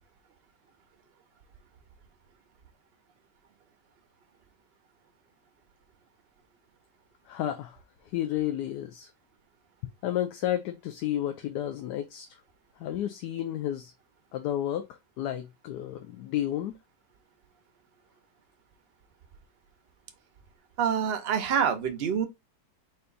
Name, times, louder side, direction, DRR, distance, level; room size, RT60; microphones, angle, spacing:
voice 1, 7.3-7.8 8.1-9.1 10.0-12.4 12.8-13.9 14.3-16.8, left 12 dB, 75° left, 1.1 m, -32 dB
voice 2, 20.8-22.3, right 7 dB, 55° right, 0.7 m, -26 dB
4.3 x 2.6 x 3.8 m
omnidirectional pair, 1.9 m